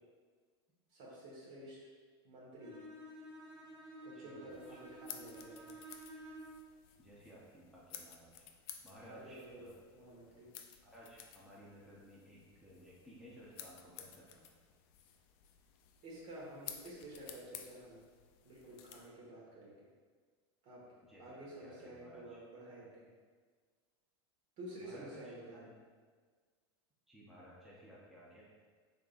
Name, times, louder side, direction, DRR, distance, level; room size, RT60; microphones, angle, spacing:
voice 1, 0.9-1.8 2.2-2.8 4.0-5.7 9.0-9.7 9.9-10.5 16.0-18.0 18.4-19.9 20.6-20.8 21.2-23.1 24.6-25.7, right 1 dB, 55° right, -5 dB, 1.4 m, -51 dB
Bowed string instrument, 2.6-6.7, right 1 dB, 25° right, 1.2 m, -52 dB
voice 2, 4.1-4.8 7.0-8.5 8.8-9.7 10.8-14.5 21.0-22.4 24.8-25.6 27.1-28.5, equal, ahead, -7 dB, 0.8 m, -57 dB
sound 1, 4.5-19.1, left 9 dB, 55° left, 0.4 m, -54 dB
3.6 x 3.6 x 2.4 m, 1.5 s
hypercardioid pair, 110°, 14 cm